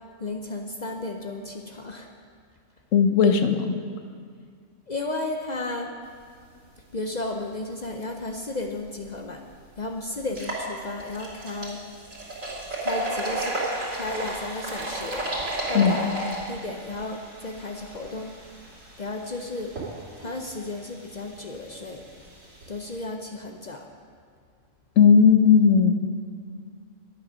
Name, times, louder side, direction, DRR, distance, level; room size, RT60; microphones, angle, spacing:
voice 1, 0.2-2.1 4.9-5.9 6.9-9.4 9.8-11.8 12.8-13.6 13.9-15.3 15.7-16.1 16.5-18.3 19.0-19.7 20.2-22.0 22.7-23.9, left 2 dB, 45° left, 3 dB, 0.6 m, -33 dB
voice 2, 2.9-3.8 15.7-16.0 25.0-25.9, left 6 dB, 75° left, 7 dB, 1.2 m, -17 dB
sound 1, 9.0-9.1 9.5-9.6 10.2-23.0, right 1 dB, 70° right, 3.0 m, -34 dB
10.5 x 8.8 x 6.2 m, 2.1 s
omnidirectional pair, 1.3 m